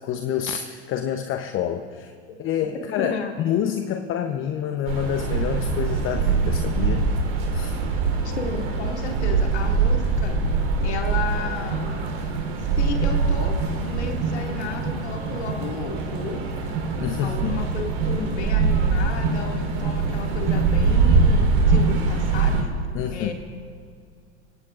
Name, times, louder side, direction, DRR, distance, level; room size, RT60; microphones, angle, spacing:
voice 1, 0.0-2.1 2.4-7.0 7.5-7.8 17.0-17.6 22.9-23.3, left 9 dB, 40° left, 6 dB, 0.9 m, -27 dB
voice 2, 3.0-3.3 8.2-10.4 10.8-12.0 12.8-13.6 13.9-16.4 17.2-22.7 23.1-23.3, left 5 dB, 80° left, 2 dB, 2.4 m, -33 dB
sound 1, 4.9-22.6, right 4 dB, 60° right, 4.0 m, -23 dB
23.5 x 18.0 x 2.5 m, 2.3 s
hypercardioid pair, 90°, 33 cm